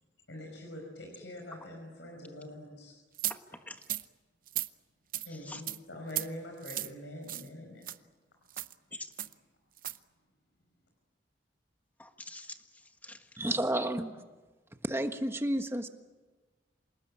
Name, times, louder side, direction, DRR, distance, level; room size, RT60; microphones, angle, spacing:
voice 1, 0.3-2.9 5.2-7.9, left 1 dB, 85° left, 1 dB, 5.3 m, -44 dB
sound 1, 3.2-3.4 3.8-4.0 4.5-4.7 5.1-5.3 5.7-5.8 6.1-6.3 6.6-6.9 7.3-7.5 7.8-8.0 8.5-8.7 9.2-9.3 9.8-10.0, right 13 dB, 50° right, 0.7 m, -35 dB
voice 2, 3.3-3.8 5.3-5.6 8.9-9.1 12.0-13.3, left 2 dB, 10° left, 6 dB, 1.6 m, -46 dB
voice 3, 13.4-14.1 14.9-15.9, right 1 dB, 15° right, 7 dB, 1.4 m, -31 dB
27.5 x 19.0 x 8.8 m, 1.3 s
head